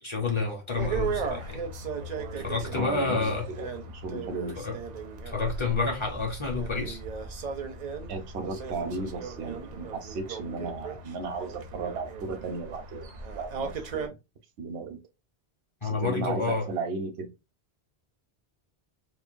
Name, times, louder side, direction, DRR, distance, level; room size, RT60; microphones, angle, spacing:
voice 1, 0.0-1.6 2.4-3.5 4.6-4.8 5.3-7.0 15.8-16.7, left 4 dB, 35° left, 0.6 m, -29 dB
sound 1, 0.8-14.1, right 4 dB, 55° right, 0.5 m, -36 dB
voice 2, 2.7-4.5 8.1-14.2 14.6-15.0 15.8-17.3, right 4 dB, 85° right, 0.9 m, -35 dB
3.0 x 2.1 x 2.4 m
omnidirectional pair, 1.1 m